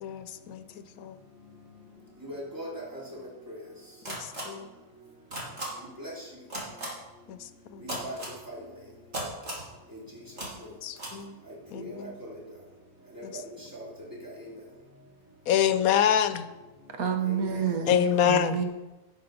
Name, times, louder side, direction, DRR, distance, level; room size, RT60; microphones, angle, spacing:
voice 1, 0.0-1.2 4.1-4.7 7.3-7.8 10.8-11.4 11.7-12.2 13.2-13.4 15.5-16.5 17.9-18.6, left 9 dB, 85° left, 11 dB, 1.1 m, -27 dB
voice 2, 2.2-3.0 3.5-3.6 6.0-6.1 7.8-8.2 8.5-8.6 11.8-12.1 13.2-13.3 13.7-13.9 17.2-17.4, equal, 15° right, -5 dB, 3.6 m, -39 dB
sound 1, 4.0-4.4 5.3-5.6 6.5-6.9 7.9-8.3 9.1-9.6 10.4-10.5 10.9-11.1, right 1 dB, 50° right, 3.0 m, -35 dB
voice 3, 16.9-18.6, right 7 dB, 90° right, 5 dB, 1.6 m, -29 dB
11.0 x 6.6 x 5.4 m, 1.1 s
omnidirectional pair, 1.5 m